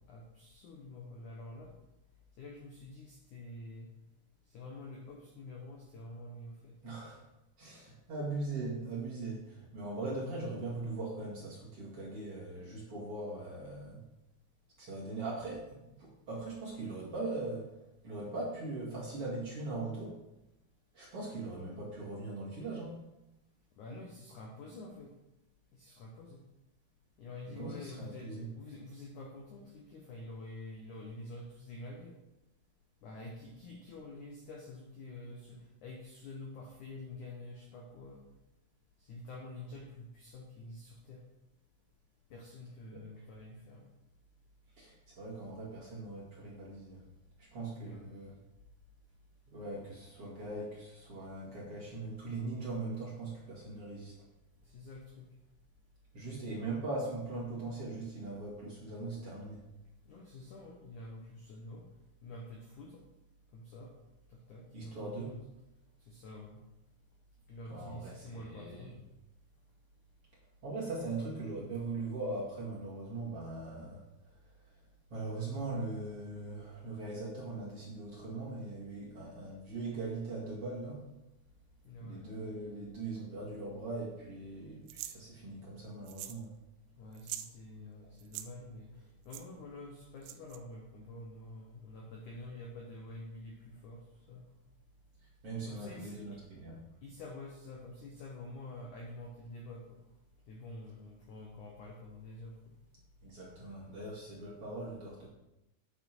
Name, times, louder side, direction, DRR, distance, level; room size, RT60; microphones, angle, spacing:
voice 1, 0.1-1.7 2.4-3.9 4.5-6.7 23.8-25.1 25.7-26.4 27.2-32.2 33.0-38.2 39.1-41.2 42.3-43.8 47.7-48.1 54.6-55.3 60.1-61.8 62.2-63.0 63.5-63.9 64.3-65.4 66.1-66.6 67.5-68.9 81.8-82.2 87.0-94.0 94.3-94.4 95.7-96.2 97.0-100.0 100.5-102.7, left 2 dB, 75° left, 0 dB, 1.8 m, -48 dB
voice 2, 6.8-7.2 7.6-14.0 14.8-17.7 18.0-20.2 20.9-23.0 27.5-28.5 42.9-43.0 44.8-47.1 47.4-48.3 49.5-54.2 56.1-59.6 64.7-65.4 67.7-68.9 70.6-74.3 74.6-74.8 75.1-81.1 82.0-86.5 95.4-96.8 103.2-105.3, right 2 dB, 40° right, -6 dB, 2.3 m, -40 dB
sound 1, 84.9-85.2 86.1-86.5 86.7-86.8 87.1-87.5 88.2-88.5 89.3-89.4 90.2-90.6, right 13 dB, 90° right, 3.0 m, -43 dB
9.5 x 9.1 x 4.6 m, 0.93 s
omnidirectional pair, 5.4 m